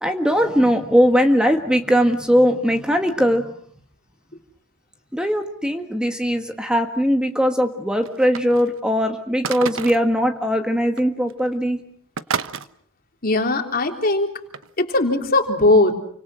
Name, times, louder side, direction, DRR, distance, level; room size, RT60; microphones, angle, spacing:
voice 1, 0.0-3.5 5.1-11.8, equal, 5° right, 5 dB, 1.6 m, -20 dB
sound 1, 8.0-8.8 9.4-10.1 11.0-11.1 11.3-11.6 12.2-12.7 14.5-14.7, right 6 dB, 65° right, 1.1 m, -29 dB
voice 2, 13.2-14.4 14.8-15.9, left 2 dB, 45° left, 4 dB, 3.5 m, -19 dB
29.5 x 25.5 x 6.4 m, 0.62 s
head